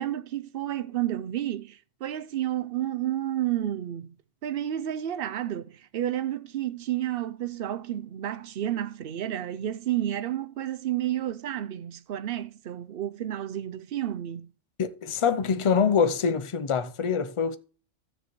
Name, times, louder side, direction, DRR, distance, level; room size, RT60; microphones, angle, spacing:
voice 1, 0.0-4.1 4.4-14.5, right 12 dB, 60° right, 0.7 m, -31 dB
voice 2, 14.8-17.6, left 6 dB, 40° left, 0.4 m, -25 dB
15.0 x 7.0 x 3.1 m
omnidirectional pair, 1.3 m